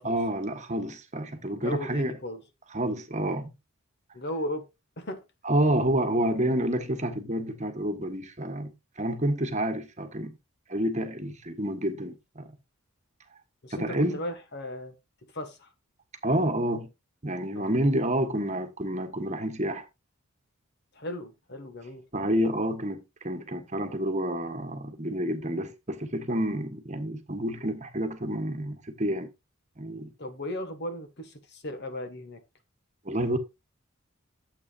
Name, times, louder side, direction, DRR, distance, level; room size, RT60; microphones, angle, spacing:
voice 1, 0.0-2.2 2.7-3.5 5.4-10.4 10.7-12.5 13.7-14.2 16.2-16.9 17.2-19.8 22.1-29.3 29.8-30.1 33.0-33.4, right 1 dB, 35° right, 1.4 m, -29 dB
voice 2, 1.5-2.4 4.1-4.7 5.0-5.2 13.6-14.9 15.3-15.7 17.5-17.7 20.9-22.0 30.2-32.4, left 1 dB, 55° left, 1.7 m, -36 dB
12.0 x 7.8 x 2.5 m
head